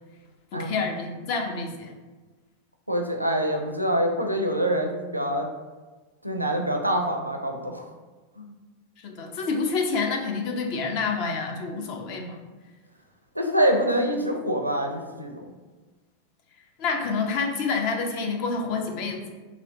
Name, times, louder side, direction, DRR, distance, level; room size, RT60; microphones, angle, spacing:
voice 1, 0.5-1.9 9.0-12.4 16.8-19.3, left 4 dB, 45° left, 3 dB, 0.6 m, -28 dB
voice 2, 2.9-5.5 6.2-7.9 8.4-8.5 13.3-15.4, equal, 85° right, 3 dB, 0.5 m, -25 dB
3.2 x 2.9 x 3.9 m, 1.3 s
figure-of-eight pair, 90°, 0 cm